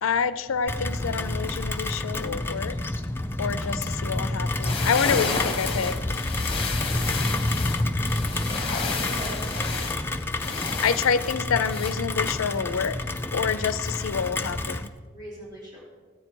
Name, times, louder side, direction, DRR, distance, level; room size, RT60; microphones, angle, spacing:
voice 1, 0.0-2.8 3.4-6.0 10.5-12.9 13.3-14.9, left 6 dB, 80° left, 14 dB, 0.5 m, -27 dB
Rain, 0.7-14.9, left 2 dB, 10° left, 0.4 m, -29 dB
sound 1, 4.4-11.9, left 4 dB, 25° left, 1.1 m, -31 dB
voice 2, 8.8-9.8 15.1-15.8, right 1 dB, 20° right, -7 dB, 3.3 m, -40 dB
14.0 x 8.8 x 4.5 m, 1.5 s
head